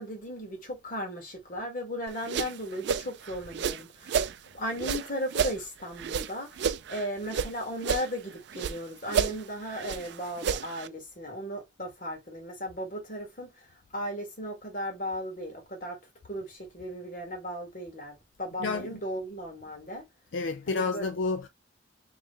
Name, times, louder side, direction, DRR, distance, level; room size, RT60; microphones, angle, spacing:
voice 1, 0.0-4.3 4.5-6.6 6.9-13.7 13.9-16.0 16.2-20.1 20.7-21.0, equal, 45° left, 1.7 m, -36 dB
sound 1, 2.1-4.4 4.8-7.5 7.8-8.8 9.1-10.9, right 7 dB, 60° right, 0.4 m, -31 dB
voice 2, 18.6-19.0 20.3-21.5, left 4 dB, 80° left, 0.5 m, -30 dB
3.6 x 3.1 x 3.0 m
head